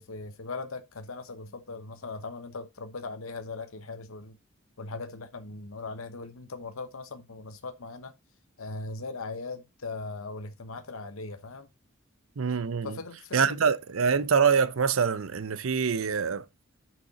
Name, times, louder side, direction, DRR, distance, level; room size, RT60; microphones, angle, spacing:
voice 1, 0.0-4.4 4.8-8.1 8.6-11.7 12.8-13.6, left 3 dB, 85° left, 1.0 m, -39 dB
voice 2, 12.4-13.0 13.3-16.4, right 6 dB, 80° right, 0.6 m, -25 dB
6.6 x 5.9 x 4.0 m
head